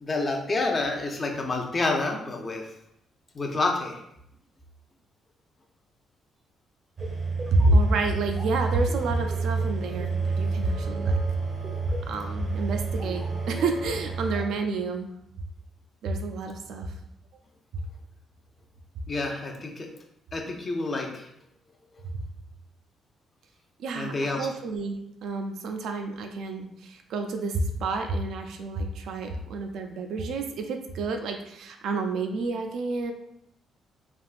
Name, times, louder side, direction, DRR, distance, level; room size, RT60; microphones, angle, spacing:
voice 1, 0.0-2.6 3.3-4.0 19.1-19.9 20.3-21.3 23.9-24.5, left 3 dB, 35° left, 2 dB, 0.5 m, -28 dB
sound 1, 7.0-14.4, right 4 dB, 35° right, 0.6 m, -30 dB
voice 2, 7.5-11.2 12.1-15.1 16.0-16.9 23.8-33.1, right 2 dB, 75° right, 5 dB, 0.4 m, -28 dB
3.4 x 2.4 x 2.4 m, 0.77 s
cardioid pair, 90°, 0 cm